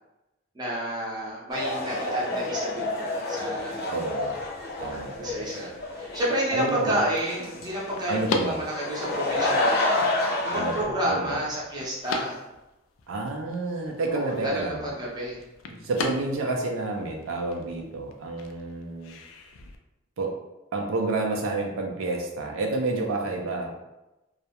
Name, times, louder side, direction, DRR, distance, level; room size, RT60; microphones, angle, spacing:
voice 1, 0.5-3.0 3.3-3.8 4.8-12.4 14.1-15.4, right 1 dB, 20° right, -6 dB, 0.6 m, -30 dB
sound 1, 1.5-10.8, left 2 dB, 55° left, 0.7 m, -29 dB
voice 2, 3.9-4.5 4.8-5.4 6.5-7.0 8.1-8.6 10.5-11.4 13.1-14.9 15.7-19.1 20.2-20.3 20.7-23.7, right 2 dB, 85° right, 1 dB, 0.4 m, -29 dB
sound 2, 4.3-19.8, left 4 dB, 80° left, 0.3 m, -40 dB
2.3 x 2.0 x 2.8 m, 0.96 s
head